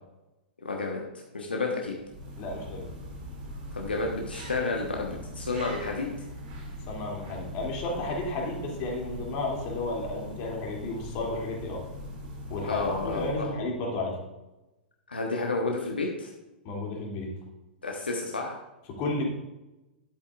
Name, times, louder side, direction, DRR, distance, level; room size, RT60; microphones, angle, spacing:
voice 1, 0.6-1.0 1.3-1.9 3.7-6.1 12.6-13.5 15.1-16.3 17.8-18.6, left 3 dB, 80° left, 0 dB, 1.3 m, -31 dB
sound 1, 1.8-13.7, left 1 dB, 50° right, 2.7 m, -41 dB
voice 2, 2.4-2.9 6.9-11.8 12.5-14.2 16.6-17.3 18.9-19.2, left 2 dB, 40° left, -1 dB, 2.8 m, -32 dB
11.0 x 8.4 x 2.5 m, 0.99 s
figure-of-eight pair, 105°, 5 cm